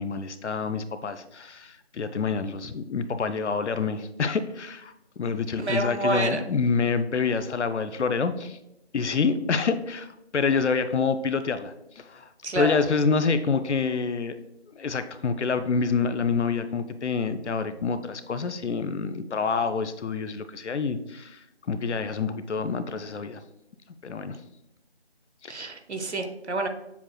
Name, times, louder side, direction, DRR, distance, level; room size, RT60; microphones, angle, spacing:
voice 1, 0.0-8.6 8.9-12.3 12.5-14.4 14.8-21.4 21.7-23.4 24.0-24.4 25.4-25.7, left 5 dB, 85° left, 11 dB, 0.5 m, -27 dB
voice 2, 5.6-6.4 12.4-12.8 25.5-26.7, right 2 dB, 75° right, 6 dB, 0.8 m, -28 dB
7.0 x 2.9 x 2.2 m, 0.86 s
figure-of-eight pair, 170°, 34 cm